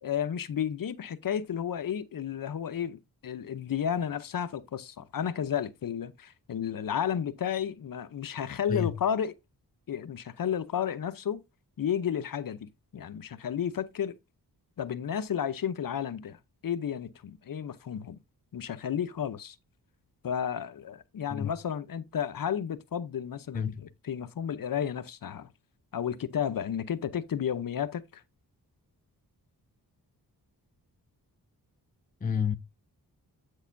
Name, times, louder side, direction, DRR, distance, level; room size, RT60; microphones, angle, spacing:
voice 1, 0.0-9.3 9.9-11.4 11.8-14.2 14.8-16.4 16.6-18.2 18.5-19.6 20.2-25.5 25.9-28.2, left 8 dB, 60° left, 0.7 m, -32 dB
voice 2, 32.2-32.6, left 7 dB, 20° left, 0.5 m, -29 dB
8.2 x 6.5 x 2.6 m
cardioid pair, 65°, 39 cm